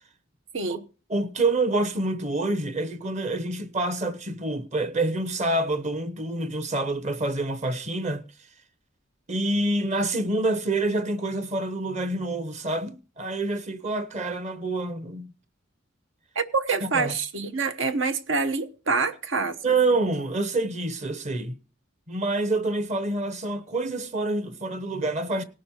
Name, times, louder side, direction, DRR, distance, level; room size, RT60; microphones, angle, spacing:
voice 1, 1.1-8.2 9.3-15.3 16.8-17.1 19.6-21.5 22.1-25.4, right 2 dB, 35° right, 1.0 m, -27 dB
voice 2, 16.3-19.6, right 4 dB, 75° right, 1.1 m, -26 dB
18.5 x 6.3 x 4.4 m
head